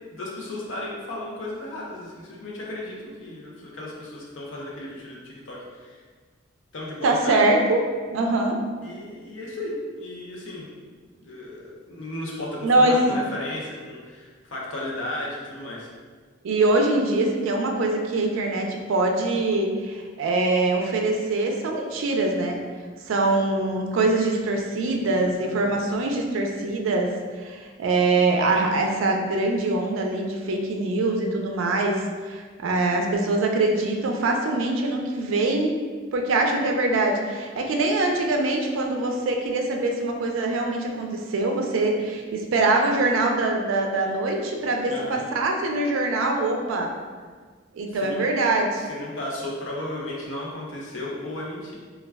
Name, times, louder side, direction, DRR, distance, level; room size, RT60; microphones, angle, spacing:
voice 1, 0.0-6.0 6.7-7.4 8.8-10.7 11.2-15.9 44.9-45.3 47.9-48.2 48.8-51.7, left 1 dB, 70° left, -4 dB, 0.6 m, -34 dB
voice 2, 7.0-7.8 8.1-8.6 12.6-13.2 16.4-22.6 23.1-35.8 36.1-46.9 47.7-48.8, right 2 dB, 80° right, 2 dB, 0.4 m, -23 dB
2.3 x 2.1 x 3.3 m, 1.5 s
head